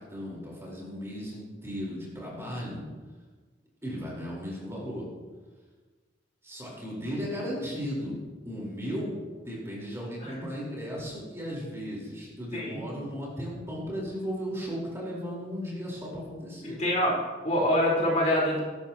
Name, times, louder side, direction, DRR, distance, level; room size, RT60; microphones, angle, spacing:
voice 1, 0.0-2.8 3.8-5.1 6.4-8.2 8.4-9.1 9.4-16.8, equal, 15° right, -5 dB, 4.4 m, -36 dB
voice 2, 12.5-12.8 16.6-17.1 17.4-18.6, left 1 dB, 40° left, -4 dB, 4.4 m, -25 dB
19.0 x 14.0 x 3.1 m, 1.4 s
head